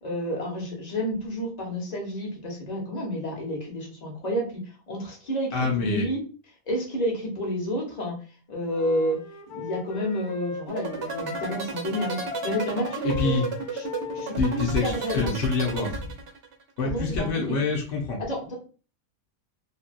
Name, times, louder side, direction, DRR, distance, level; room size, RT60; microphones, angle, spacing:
voice 1, 0.0-4.6 4.9-6.2 6.7-8.1 8.5-9.2 9.5-13.4 13.7-13.8 14.1-15.3 16.8-17.6 18.2-18.6, equal, 35° left, -1 dB, 0.8 m, -30 dB
voice 2, 5.5-6.1 13.0-13.5 14.4-16.0 16.8-18.2, left 3 dB, 60° left, -1 dB, 0.9 m, -26 dB
Wind instrument woodwind instrument, 8.7-11.6 11.9-15.1, left 4 dB, 80° left, 1.2 m, -37 dB
sound 1, 10.7-16.6, right 5 dB, 65° right, 0.6 m, -33 dB
2.7 x 2.7 x 2.5 m, 0.37 s
omnidirectional pair, 1.7 m